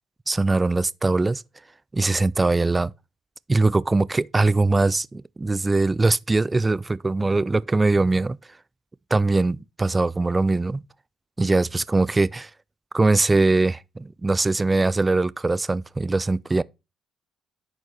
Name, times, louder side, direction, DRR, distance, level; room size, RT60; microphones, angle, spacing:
voice 1, 0.3-1.4 1.9-2.9 3.5-8.4 9.1-10.8 11.4-12.5 12.9-16.6, right 3 dB, 20° right, 0.3 m, -21 dB
10.5 x 4.5 x 3.4 m
supercardioid pair, 75°, 0 cm